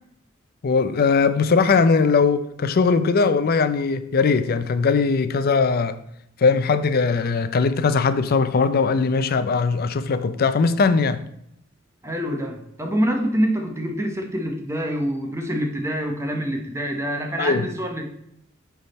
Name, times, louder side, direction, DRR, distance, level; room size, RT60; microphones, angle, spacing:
voice 1, 0.6-6.0 6.4-11.2 17.4-17.7, left 4 dB, 50° left, 0.4 m, -20 dB
voice 2, 12.0-18.1, equal, 15° right, 0.7 m, -26 dB
9.6 x 3.5 x 4.1 m
head